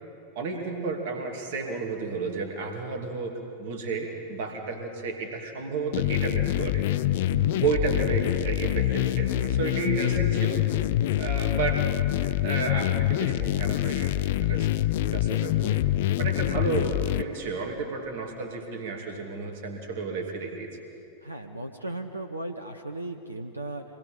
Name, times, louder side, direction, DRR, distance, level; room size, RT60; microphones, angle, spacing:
voice 1, 0.3-6.8 7.6-10.6 11.2-11.8 12.2-14.7 15.0-15.8 16.2-20.7, right 4 dB, 50° right, 3 dB, 2.7 m, -32 dB
sound 1, 5.9-17.2, left 14 dB, 55° left, 0.5 m, -25 dB
voice 2, 7.3-7.6 21.2-23.8, right 2 dB, 85° right, 6 dB, 0.9 m, -36 dB
25.5 x 19.5 x 5.4 m, 2.6 s
figure-of-eight pair, 90°, 0 cm